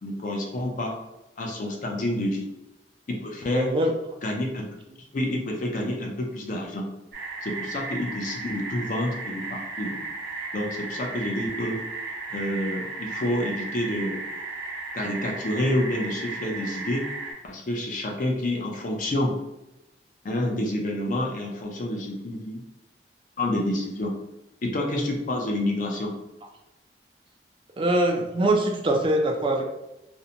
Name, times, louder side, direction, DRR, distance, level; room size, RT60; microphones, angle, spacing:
voice 1, 0.0-1.0 1.4-2.4 3.1-3.7 4.2-4.6 5.1-6.9 7.4-10.0 10.5-11.8 12.3-14.2 14.9-17.1 17.5-19.3 20.2-22.6 23.4-24.1 24.6-26.1, left 1 dB, 50° left, 0 dB, 0.5 m, -28 dB
voice 2, 3.5-3.9 27.8-29.7, right 1 dB, 30° right, 2 dB, 0.3 m, -23 dB
sound 1, 7.1-17.3, right 3 dB, 60° right, 0.9 m, -35 dB
2.6 x 2.1 x 2.7 m, 0.91 s
head